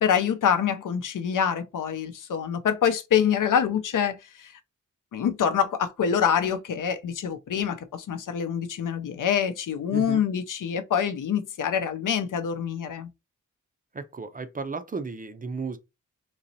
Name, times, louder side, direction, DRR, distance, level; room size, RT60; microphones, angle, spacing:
voice 1, 0.0-4.6 5.1-13.1, left 8 dB, 80° left, 0.6 m, -25 dB
voice 2, 13.9-15.8, right 4 dB, 30° right, 0.4 m, -34 dB
3.9 x 3.0 x 2.7 m
wide cardioid pair, 160°, 31 cm